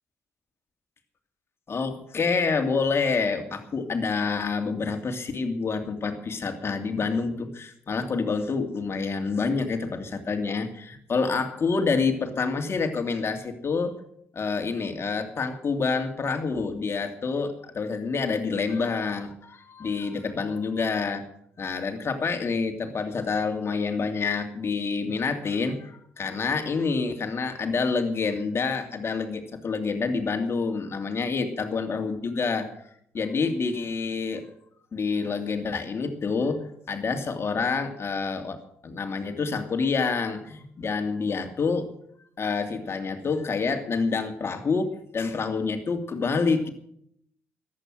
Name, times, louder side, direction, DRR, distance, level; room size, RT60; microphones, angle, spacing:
voice 1, 1.7-14.0 14.3-21.2 21.6-32.7 33.1-34.5 34.9-38.6 38.8-41.9 42.4-46.7, left 4 dB, 40° left, 6 dB, 2.6 m, -27 dB
14.5 x 11.0 x 6.4 m, 0.69 s
hypercardioid pair, 45°, 6 cm